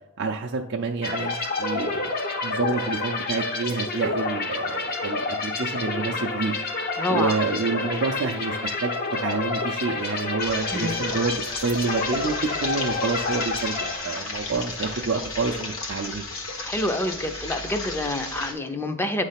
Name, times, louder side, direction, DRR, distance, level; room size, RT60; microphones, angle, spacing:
voice 1, 0.2-2.1 2.4-6.6 7.1-9.0 9.2-16.3, right 4 dB, 55° right, 1 dB, 0.5 m, -28 dB
sound 1, 1.0-14.6, left 3 dB, 50° left, 0.9 m, -29 dB
voice 2, 7.0-7.4 10.7-10.9 16.6-19.3, left 1 dB, 10° left, 7 dB, 0.6 m, -27 dB
sound 2, 10.4-18.5, left 2 dB, 70° left, 1.4 m, -34 dB
9.0 x 3.3 x 5.7 m, 0.85 s
head